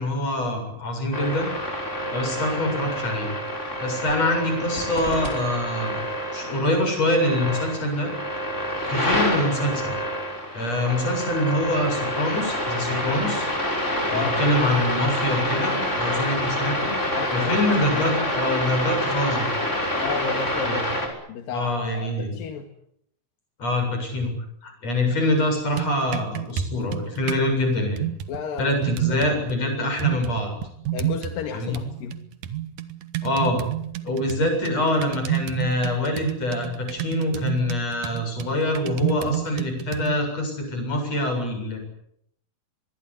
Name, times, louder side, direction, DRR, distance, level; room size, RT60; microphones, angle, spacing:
voice 1, 0.0-1.5 2.1-3.3 3.8-6.0 6.3-8.1 8.9-10.0 10.5-13.5 14.1-16.9 17.3-19.6 20.7-20.9 21.5-22.3 23.6-24.3 24.6-28.1 28.6-30.5 31.5-31.8 33.2-33.6 34.0-41.8, left 1 dB, 45° left, 5 dB, 8.8 m, -25 dB
sound 1, 1.1-21.1, left 1 dB, 20° left, 6.2 m, -27 dB
voice 2, 14.1-14.4 17.1-17.6 20.0-22.7 28.3-28.7 29.1-29.2 30.9-32.2, left 6 dB, 80° left, 6 dB, 3.6 m, -33 dB
sound 2, 25.5-27.5 28.0-29.5 30.0-31.5 31.7-40.2, right 12 dB, 65° right, 2.7 m, -30 dB
24.5 x 21.5 x 9.8 m, 0.72 s
omnidirectional pair, 4.0 m